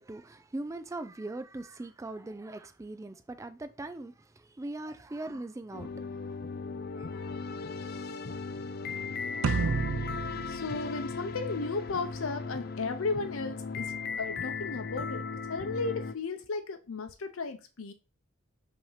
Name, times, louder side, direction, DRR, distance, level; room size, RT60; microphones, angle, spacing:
voice 1, 0.0-6.4 7.0-7.5, right 2 dB, 15° right, 0.3 m, -41 dB
sound 1, 5.7-16.1, left 5 dB, 50° left, 0.5 m, -37 dB
sound 2, 9.4-11.9, right 5 dB, 90° right, 0.4 m, -32 dB
voice 2, 10.5-17.9, left 3 dB, 80° left, 0.7 m, -35 dB
5.8 x 2.9 x 5.6 m
head